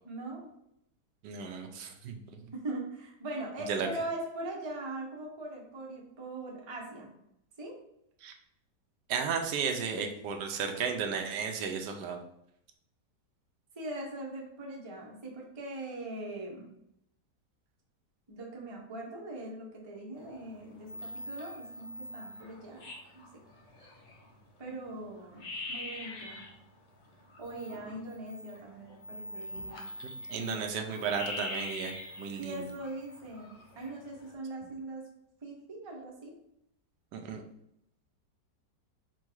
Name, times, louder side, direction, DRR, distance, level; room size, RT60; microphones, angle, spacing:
voice 1, 0.0-0.5 2.5-7.1 7.6-7.8 13.7-16.7 18.3-22.9 23.1-23.2 24.6-26.4 27.4-29.8 30.3-30.6 32.4-35.1 35.4-36.4, right 2 dB, 30° right, -2 dB, 0.5 m, -41 dB
voice 2, 1.2-2.4 3.7-3.9 8.2-8.3 9.1-12.2 30.3-32.6 37.1-37.4, right 6 dB, 85° right, 4 dB, 1.2 m, -34 dB
sound 1, 20.2-20.6 20.8-24.4 24.8-24.9 25.2-26.6 27.0-34.3, left 1 dB, 60° left, 0.4 m, -43 dB
4.5 x 2.3 x 4.5 m, 0.76 s
omnidirectional pair, 1.9 m